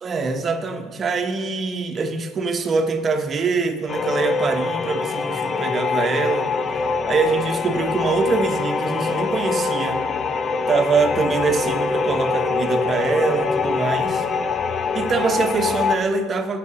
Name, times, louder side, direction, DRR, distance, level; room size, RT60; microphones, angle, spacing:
voice 1, 0.0-10.0 10.7-14.2 14.9-16.6, right 4 dB, 40° right, 6 dB, 1.1 m, -23 dB
sound 1, 3.9-16.0, left 4 dB, 40° left, 0.5 m, -24 dB
9.4 x 6.0 x 6.4 m, 1.4 s
hypercardioid pair, 70°, 0 cm